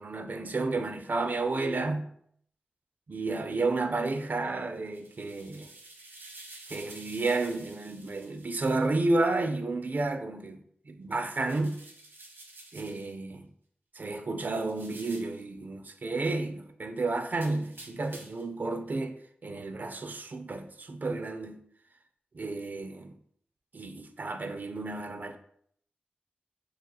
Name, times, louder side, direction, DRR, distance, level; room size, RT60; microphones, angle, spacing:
voice 1, 0.0-2.1 3.1-5.7 6.7-11.8 12.7-13.5 14.0-21.7 22.3-23.2 23.7-25.4, right 3 dB, 55° right, 0.4 m, -31 dB
sound 1, 4.8-8.9 11.3-13.1 14.5-15.4 17.3-18.5, right 2 dB, 85° right, 0.8 m, -50 dB
6.3 x 2.9 x 2.2 m
wide cardioid pair, 95°, 4 cm